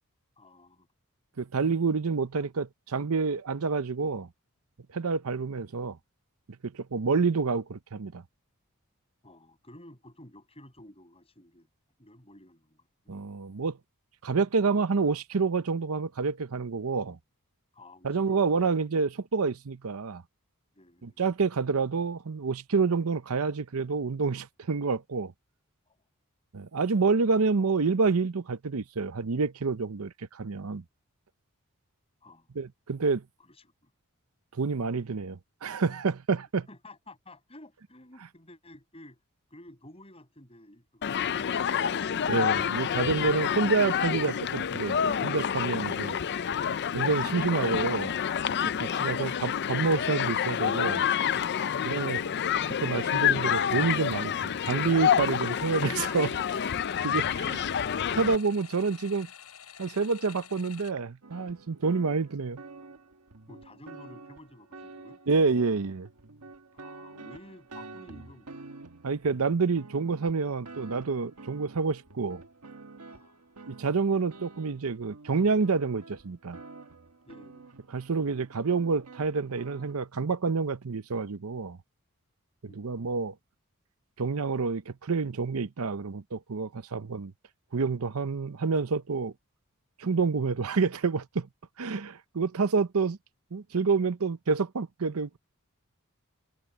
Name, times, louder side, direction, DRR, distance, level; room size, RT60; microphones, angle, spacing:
voice 1, 0.4-0.9 2.3-2.5 9.2-11.7 12.0-13.2 17.7-18.5 18.8-18.9 20.7-21.2 25.9-26.0 32.2-32.5 33.4-33.9 36.7-39.2 39.5-42.4 63.5-65.2 66.7-68.8 73.1-73.5 77.2-77.7 82.7-83.1, left 1 dB, 25° left, 6.3 m, -52 dB
voice 2, 1.4-4.3 4.9-6.0 6.6-8.2 13.1-13.8 14.2-17.2 18.0-20.2 21.0-25.3 26.5-30.8 32.6-33.2 34.6-36.7 42.3-46.1 46.9-48.1 48.8-51.0 51.8-52.2 52.8-56.4 57.0-57.6 58.1-59.3 59.8-62.6 65.3-66.1 69.0-72.4 73.7-76.6 77.9-81.8 82.6-83.3 84.2-87.3 87.7-89.3 90.0-91.5 91.8-93.2 93.5-95.4, right 4 dB, 70° right, 0.7 m, -28 dB
Human group actions, 41.0-58.4, left 8 dB, 50° left, 0.5 m, -28 dB
sound 1, 55.5-60.9, left 9 dB, 85° left, 5.8 m, -49 dB
sound 2, 61.2-80.0, right 3 dB, 85° right, 1.5 m, -49 dB
head